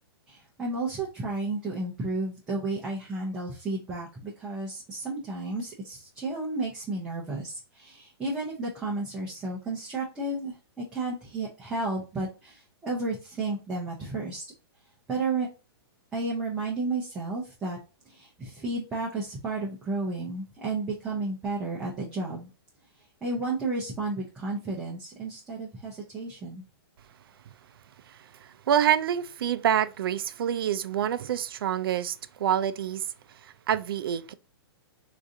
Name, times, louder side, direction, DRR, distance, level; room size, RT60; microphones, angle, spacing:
voice 1, 0.3-14.4 15.1-15.5 16.1-17.8 18.1-22.5 23.2-26.6, right 3 dB, 5° right, 0.5 m, -32 dB
voice 2, 28.1-34.3, right 9 dB, 65° right, 0.4 m, -27 dB
3.8 x 2.5 x 2.6 m
hypercardioid pair, 170°, 13 cm